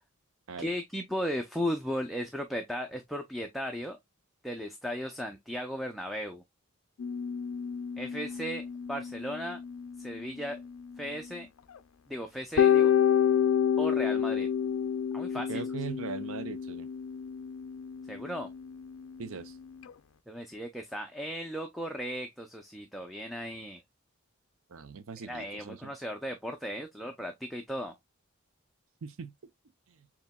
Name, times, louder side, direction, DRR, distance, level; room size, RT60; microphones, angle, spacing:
voice 1, 0.6-4.0 4.4-6.4 8.0-9.6 10.0-10.6 11.0-11.5 12.1-12.9 13.8-14.5 15.1-15.6 18.1-18.5 20.3-23.8 25.2-28.0, equal, ahead, 0.5 m, -36 dB
sound 1, 7.0-11.4 11.7-11.8 12.6-19.9, left 8 dB, 70° left, 0.4 m, -30 dB
voice 2, 15.5-16.9 19.2-19.6 24.7-25.9 29.0-29.3 29.9-30.1, right 5 dB, 75° right, 0.6 m, -40 dB
7.1 x 2.9 x 2.2 m
head